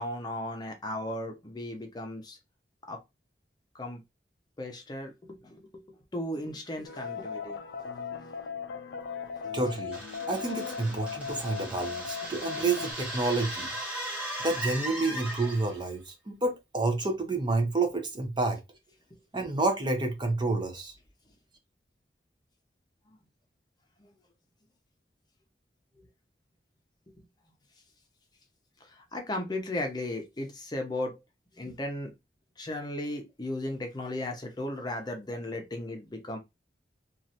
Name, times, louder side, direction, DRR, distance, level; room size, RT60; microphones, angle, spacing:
voice 1, 0.0-2.4 2.9-3.0 3.7-4.0 4.6-5.8 6.1-7.6 29.1-31.1 31.6-32.1 32.6-36.4, left 1 dB, 25° left, 0.6 m, -35 dB
sound 1, 6.8-12.9, left 6 dB, 80° left, 0.4 m, -38 dB
voice 2, 9.5-13.7 14.4-18.6 19.3-20.9, right 3 dB, 25° right, 0.6 m, -29 dB
sound 2, 9.9-15.8, right 1 dB, 5° right, 1.1 m, -38 dB
3.1 x 2.4 x 2.7 m
head